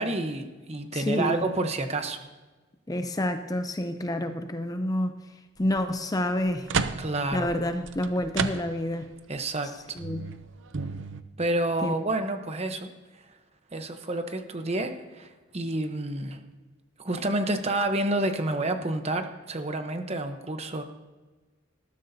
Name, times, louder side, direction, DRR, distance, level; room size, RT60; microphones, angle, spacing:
voice 1, 0.0-2.2 7.0-7.5 9.3-10.0 11.4-12.9 13.7-16.4 17.0-20.8, right 2 dB, 30° right, 7 dB, 1.0 m, -29 dB
voice 2, 0.9-1.5 2.9-5.1 5.6-6.7 7.3-9.1 10.0-10.2 11.8-11.9, left 1 dB, 20° left, 8 dB, 0.5 m, -28 dB
sound 1, 5.6-5.8 6.3-9.1 9.5-9.6 10.0-11.2, right 5 dB, 70° right, 0.6 m, -33 dB
19.5 x 13.0 x 2.8 m, 1.2 s
head